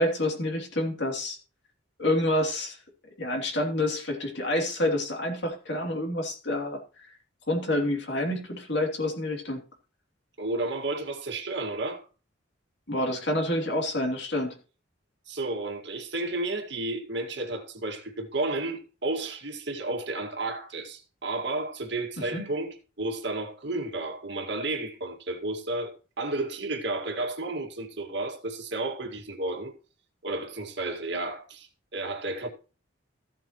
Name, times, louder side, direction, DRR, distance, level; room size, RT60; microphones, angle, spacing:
voice 1, 0.0-1.4 2.0-2.8 3.2-6.8 7.5-9.6 12.9-14.6 22.3-22.5, left 1 dB, 60° left, 2.9 m, -28 dB
voice 2, 10.4-12.1 15.3-29.7 30.2-32.5, right 2 dB, 60° right, 2.0 m, -32 dB
15.0 x 7.6 x 3.0 m
head